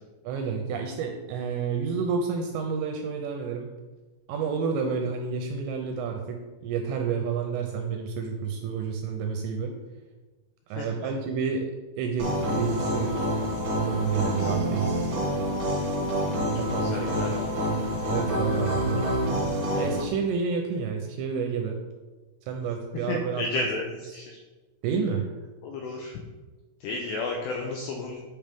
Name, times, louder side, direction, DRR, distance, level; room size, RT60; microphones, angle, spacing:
voice 1, 0.2-3.7 4.3-9.7 10.7-11.7 12.0-13.1 13.4-15.1 16.6-17.5 17.8-19.1 19.7-21.8 22.5-23.7 24.8-25.3, right 6 dB, 80° right, 3 dB, 2.6 m, -30 dB
voice 2, 10.8-11.1 16.8-18.1 22.9-24.4 25.6-26.2 26.8-28.2, left 3 dB, 90° left, 1 dB, 2.4 m, -33 dB
sound 1, 12.2-20.0, equal, 50° right, 1.6 m, -27 dB
8.5 x 5.8 x 3.5 m, 1.2 s
omnidirectional pair, 5.7 m